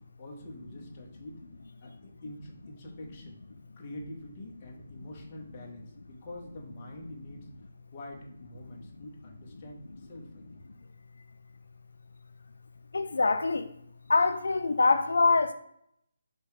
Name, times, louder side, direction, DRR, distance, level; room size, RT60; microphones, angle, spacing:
voice 1, 0.2-1.4 1.8-3.4 3.8-7.5 7.9-10.6, left 1 dB, 20° left, 0.7 m, -45 dB
voice 2, 12.9-13.7 14.1-15.5, left 3 dB, 75° left, 0.4 m, -24 dB
5.1 x 2.2 x 4.7 m
hypercardioid pair, 175°, 0 cm